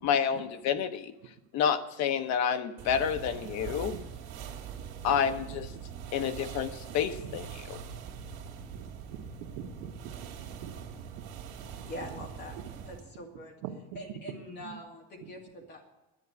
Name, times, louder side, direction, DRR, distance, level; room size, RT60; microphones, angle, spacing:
voice 1, 0.0-1.1 1.5-4.0 5.0-5.7 6.1-7.8, left 8 dB, 45° left, 9 dB, 0.9 m, -29 dB
sound 1, 2.8-13.1, right 7 dB, 55° right, 2.4 m, -43 dB
voice 2, 4.7-5.1 7.2-7.4 8.7-9.3 9.6-9.9 10.6-10.7 11.8-11.9 13.6-13.7 14.6-14.8, right 12 dB, 75° right, 3 dB, 1.4 m, -44 dB
voice 3, 11.9-12.6 12.8-13.6 13.9-15.8, left 1 dB, 25° left, 1 dB, 2.4 m, -43 dB
11.0 x 9.6 x 8.3 m, 0.99 s
cardioid pair, 175°, 38 cm